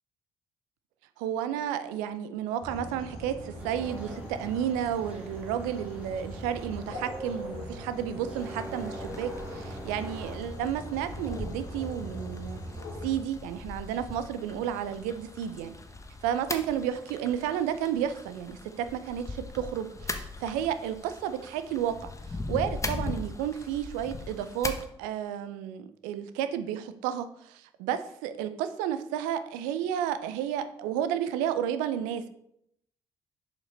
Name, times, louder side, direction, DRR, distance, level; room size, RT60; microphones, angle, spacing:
voice 1, 1.2-12.6 13.0-15.8 16.2-24.7 25.0-32.3, right 9 dB, 75° right, 11 dB, 0.5 m, -32 dB
sound 1, 2.6-13.2, equal, 75° left, 1.9 m, -41 dB
sound 2, 3.6-10.4, right 1 dB, 10° right, 1.8 m, -45 dB
sound 3, 8.4-24.9, left 3 dB, 20° left, 1.0 m, -40 dB
7.3 x 5.2 x 4.0 m, 0.75 s
figure-of-eight pair, 40°, 14 cm